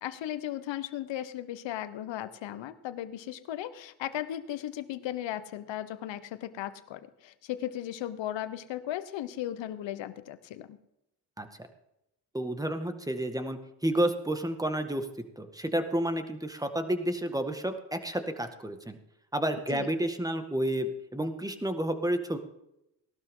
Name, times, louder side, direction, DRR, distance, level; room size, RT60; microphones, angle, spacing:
voice 1, 0.0-10.8 19.7-19.9, left 12 dB, 75° left, 13 dB, 1.1 m, -36 dB
voice 2, 12.3-15.1 15.4-19.0 19.3-22.4, right 1 dB, 10° right, 7 dB, 1.9 m, -30 dB
18.5 x 12.5 x 3.8 m, 0.84 s
cardioid pair, 70°, 44 cm